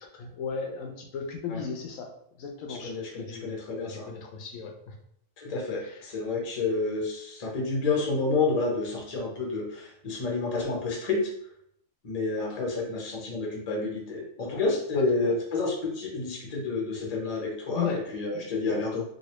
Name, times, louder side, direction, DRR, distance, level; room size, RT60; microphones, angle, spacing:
voice 1, 0.1-2.1 2.4-3.6 3.8-5.0 5.8-6.1 14.5-14.6 14.9-15.3 17.7-18.0 18.3-18.8, left 6 dB, 80° left, 2 dB, 1.0 m, -36 dB
voice 2, 2.7-4.1 5.4-11.3 12.0-19.0, left 3 dB, 35° left, -1 dB, 0.8 m, -29 dB
3.1 x 2.8 x 2.9 m, 0.72 s
omnidirectional pair, 1.4 m